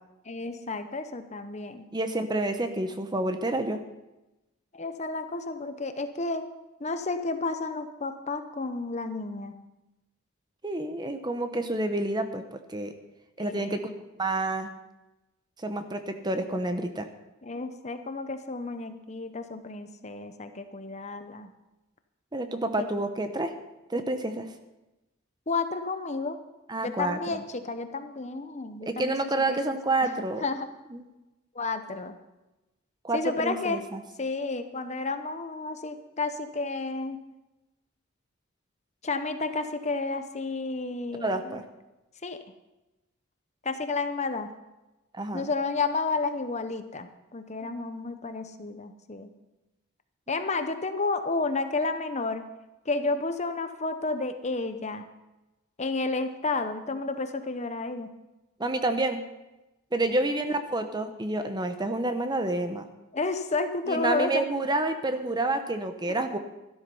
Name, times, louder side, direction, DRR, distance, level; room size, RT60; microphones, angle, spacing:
voice 1, 0.3-1.9 4.7-6.4 6.8-9.5 13.5-13.8 17.4-21.5 22.8-22.9 25.5-26.4 26.8-29.2 29.5-29.6 30.0-30.1 30.4-30.7 31.5-32.2 33.1-33.8 34.2-37.2 39.0-41.6 42.2-42.4 43.6-44.5 45.3-49.3 50.3-52.5 52.9-55.0 55.8-58.1 63.1-64.4, left 3 dB, 30° left, 9 dB, 0.8 m, -31 dB
voice 2, 1.9-3.8 10.6-12.9 13.4-13.9 14.2-14.7 15.6-17.1 22.3-23.5 23.9-24.5 26.7-27.4 28.8-30.4 30.9-31.1 33.0-34.0 41.2-41.6 45.1-45.5 47.6-47.7 50.3-50.4 58.6-59.2 59.9-62.9 63.9-66.4, right 2 dB, 20° right, 8 dB, 0.8 m, -29 dB
13.5 x 12.0 x 5.5 m, 1.0 s
head